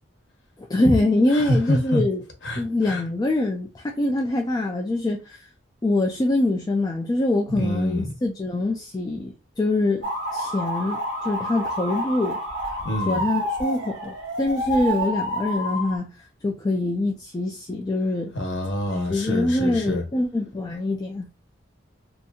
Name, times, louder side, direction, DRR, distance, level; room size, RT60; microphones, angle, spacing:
voice 1, 0.7-2.2 2.6-5.5 5.8-12.4 13.1-16.1 16.4-18.3 19.1-21.3, left 2 dB, 20° left, 0.3 m, -24 dB
voice 2, 1.3-2.0 2.4-3.0 7.5-8.1 12.8-13.2 18.3-20.0, left 1 dB, 65° left, 1.0 m, -26 dB
sound 1, 10.0-16.0, equal, 75° right, 1.1 m, -29 dB
2.8 x 2.5 x 2.3 m
head